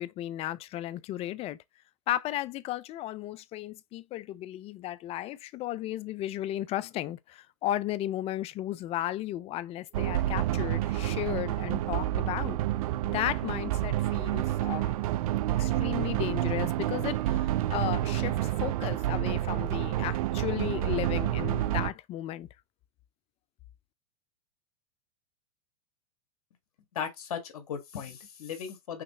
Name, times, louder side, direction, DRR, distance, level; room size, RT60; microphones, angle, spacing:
voice 1, 0.0-1.6 2.1-12.6 13.0-15.0 15.6-22.5, left 14 dB, 35° left, 0.5 m, -34 dB
sound 1, 9.9-21.9, right 14 dB, 70° right, 0.5 m, -29 dB
voice 2, 26.9-29.0, left 7 dB, 80° left, 1.6 m, -37 dB
5.8 x 3.1 x 2.9 m
hypercardioid pair, 120°, 19 cm